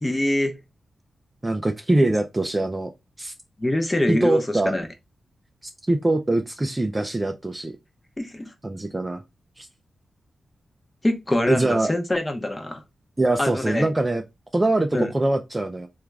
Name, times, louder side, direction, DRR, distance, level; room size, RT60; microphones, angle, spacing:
voice 1, 0.0-0.5 2.0-2.1 3.6-4.9 8.2-8.5 11.0-12.8 13.4-13.9 14.9-15.1, left 1 dB, 20° left, 0.7 m, -24 dB
voice 2, 1.4-2.9 3.2-3.3 4.1-4.7 5.9-7.7 8.6-9.2 9.6-9.7 11.5-11.9 13.2-14.2 14.5-15.9, right 2 dB, 20° right, 0.4 m, -23 dB
3.5 x 2.4 x 3.2 m
wide cardioid pair, 110°, 0 cm